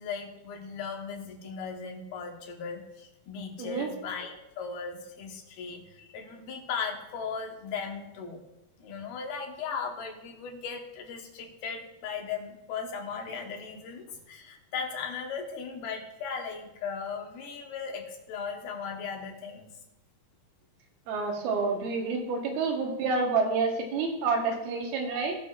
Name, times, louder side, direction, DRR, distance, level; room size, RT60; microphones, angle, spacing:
voice 1, 0.0-8.4 8.8-19.6, left 5 dB, 85° left, 2 dB, 3.2 m, -37 dB
voice 2, 21.1-25.4, right 4 dB, 85° right, 2 dB, 3.2 m, -28 dB
19.0 x 6.3 x 2.5 m, 0.93 s
omnidirectional pair, 4.3 m